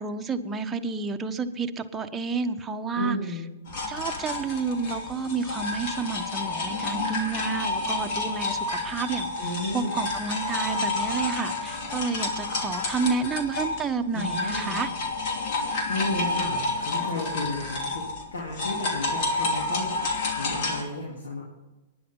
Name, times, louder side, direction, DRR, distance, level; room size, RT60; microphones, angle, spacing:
voice 1, 0.0-3.2 3.9-9.3 9.7-14.9, right 4 dB, 15° right, 4 dB, 1.1 m, -30 dB
voice 2, 2.9-3.4 9.4-9.9 14.1-14.8 15.9-18.0 18.3-21.4, left 2 dB, 90° left, -4 dB, 3.3 m, -33 dB
sound 1, 3.7-13.9 14.1-20.8, left 3 dB, 55° left, 2.9 m, -30 dB
24.0 x 10.5 x 3.9 m, 1.1 s
hypercardioid pair, 120°, 0 cm